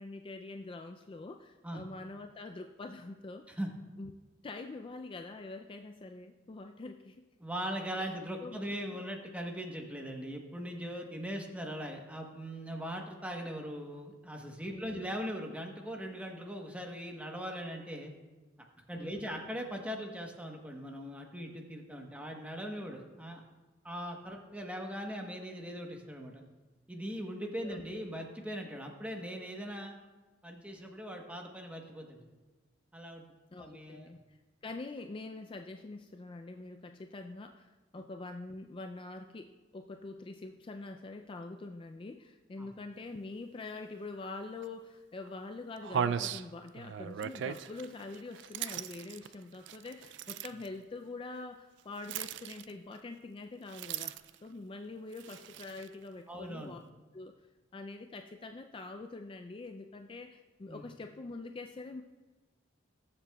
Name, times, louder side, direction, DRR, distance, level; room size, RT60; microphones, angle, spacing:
voice 1, 0.0-3.6 4.0-4.1 4.4-7.3 8.0-8.1 8.4-8.7 8.9-9.0 14.7-15.1 18.9-19.3 27.6-27.8 33.5-34.2 34.6-54.1 54.4-56.8 57.1-57.3 57.7-62.0, left 3 dB, 30° left, 5 dB, 0.3 m, -45 dB
voice 2, 7.4-18.1 18.9-23.4 23.8-26.4 26.9-29.9 30.4-32.3 32.9-33.2 33.6-34.2 42.6-42.7 56.3-56.8 60.7-60.8, equal, 5° right, 2 dB, 1.0 m, -40 dB
sound 1, 44.6-44.7 45.3-45.4 45.8-50.7 52.0-53.0 53.7-54.5 55.1-55.9, right 8 dB, 65° right, 0.3 m, -38 dB
20.0 x 7.5 x 2.3 m, 1.2 s
head